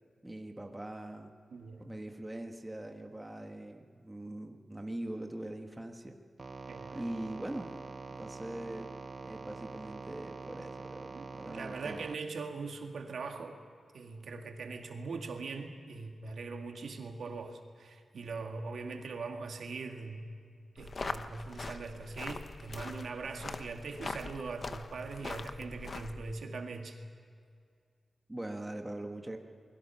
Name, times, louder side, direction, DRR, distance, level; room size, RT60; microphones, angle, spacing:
voice 1, 0.2-1.3 1.8-6.2 6.9-7.7 8.2-8.9 9.2-12.1 28.3-29.4, right 1 dB, 10° right, 3 dB, 1.5 m, -42 dB
voice 2, 1.5-1.9 6.7-7.0 11.1-13.6 13.9-20.3 20.7-27.0, right 4 dB, 85° right, 3 dB, 2.1 m, -41 dB
sound 1, 6.4-12.2, right 4 dB, 35° right, 0.5 m, -45 dB
sound 2, 20.8-26.3, left 3 dB, 40° left, 0.9 m, -42 dB
28.5 x 21.5 x 5.8 m, 2.2 s
wide cardioid pair, 140°, 0 cm